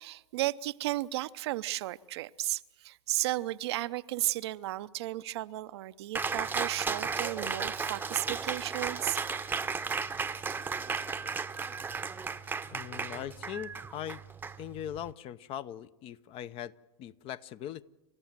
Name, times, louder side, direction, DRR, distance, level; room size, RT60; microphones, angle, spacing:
voice 1, 0.0-9.2, right 16 dB, 65° right, 0.7 m, -34 dB
Cheering, 6.1-15.1, right 5 dB, 10° right, 0.8 m, -35 dB
voice 2, 12.7-14.2 14.6-17.8, left 11 dB, 40° left, 0.7 m, -40 dB
29.5 x 14.0 x 7.4 m
hypercardioid pair, 105°, 15 cm